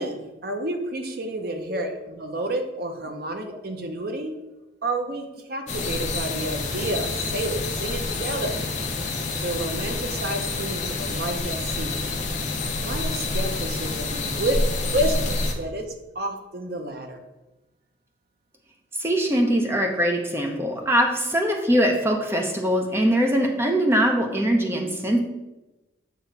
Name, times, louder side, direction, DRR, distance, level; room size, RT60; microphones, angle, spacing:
voice 1, 0.0-4.4 4.8-8.6 9.4-12.0 12.8-14.6 14.9-17.2, right 1 dB, 50° right, 5 dB, 0.8 m, -30 dB
sound 1, 5.7-15.5, left 3 dB, 40° left, 0.8 m, -28 dB
voice 2, 19.0-25.2, equal, 15° right, 2 dB, 0.7 m, -22 dB
7.1 x 3.1 x 5.6 m, 1.0 s
head